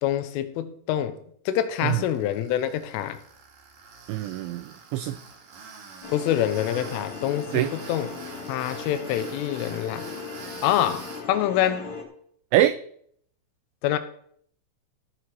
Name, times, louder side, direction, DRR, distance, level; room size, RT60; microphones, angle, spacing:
voice 1, 0.0-1.2 1.5-3.2 6.1-8.1 8.5-10.1 10.6-11.9 13.8-14.0, left 11 dB, 80° left, 3.2 m, -26 dB
Tools, 1.7-11.2, right 5 dB, 50° right, 3.2 m, -45 dB
voice 2, 4.1-5.2 7.5-7.7 12.5-12.8, right 13 dB, 90° right, 2.6 m, -24 dB
sound 1, 6.0-12.0, left 4 dB, 60° left, 1.3 m, -38 dB
18.0 x 6.5 x 4.6 m
omnidirectional pair, 5.8 m